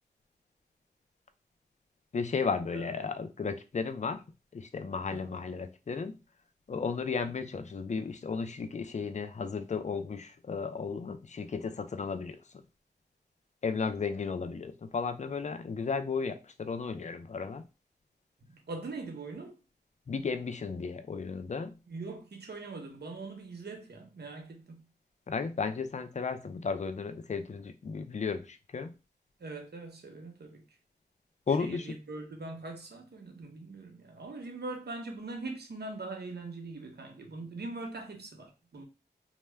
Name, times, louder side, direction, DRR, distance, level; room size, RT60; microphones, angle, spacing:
voice 1, 2.1-4.2 4.5-6.2 6.7-12.4 13.6-17.6 20.1-21.7 25.3-28.9 31.5-31.9, left 5 dB, 40° left, 0.4 m, -34 dB
voice 2, 18.5-19.6 21.9-24.8 29.4-30.6 31.6-38.8, right 3 dB, 70° right, 0.7 m, -42 dB
2.1 x 2.1 x 3.3 m
cardioid pair, 40°, 18 cm